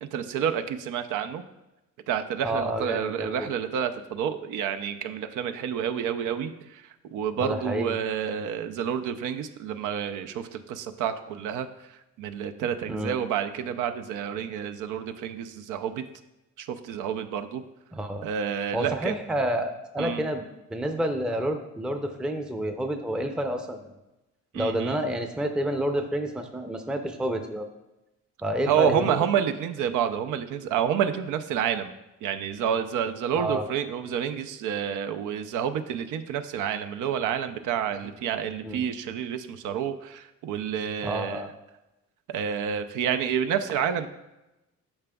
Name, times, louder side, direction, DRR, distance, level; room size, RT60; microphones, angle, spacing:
voice 1, 0.0-1.4 2.1-11.7 12.2-16.0 16.6-17.6 18.2-19.2 20.0-20.2 24.5-25.0 28.7-31.9 32.2-41.4 42.3-44.1, right 8 dB, 85° right, 8 dB, 0.5 m, -29 dB
voice 2, 2.4-3.5 7.4-8.0 12.9-13.2 17.9-18.3 18.7-20.4 20.7-23.9 24.5-27.7 28.4-29.3 33.4-33.6 38.6-38.8 41.0-41.5, right 1 dB, 5° right, 6 dB, 0.5 m, -29 dB
8.6 x 5.9 x 2.3 m, 0.96 s
cardioid pair, 90°, 30 cm